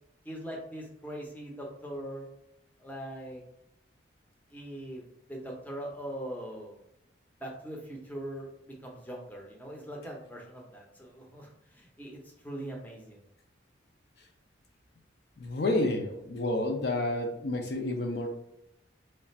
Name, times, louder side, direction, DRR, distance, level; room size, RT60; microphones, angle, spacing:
voice 1, 0.2-2.3 2.8-3.4 4.5-5.0 5.3-6.7 7.4-13.2, right 1 dB, 10° left, -1 dB, 0.6 m, -41 dB
voice 2, 15.4-18.3, left 2 dB, 60° left, 3 dB, 0.5 m, -30 dB
3.2 x 2.4 x 4.0 m, 0.80 s
head